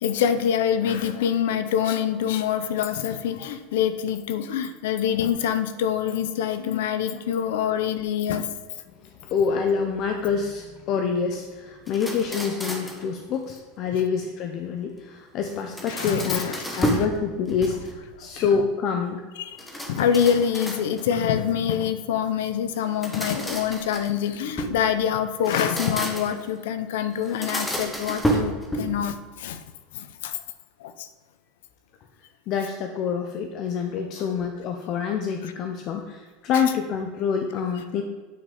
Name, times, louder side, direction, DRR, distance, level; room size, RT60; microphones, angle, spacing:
voice 1, 0.0-8.5 15.9-16.9 18.4-18.5 19.4-19.6 19.9-29.6 29.9-30.4 30.8-31.1, left 8 dB, 80° left, 11 dB, 0.6 m, -25 dB
voice 2, 9.0-19.2 32.5-38.0, left 6 dB, 40° left, 4 dB, 0.6 m, -27 dB
sound 1, 11.9-13.1 15.5-17.1 17.5-18.1 19.6-21.2 22.8-24.8 25.3-26.5 27.2-29.1, right 1 dB, 5° left, 1.0 m, -30 dB
8.9 x 4.2 x 4.9 m, 1.4 s
supercardioid pair, 155°, 0 cm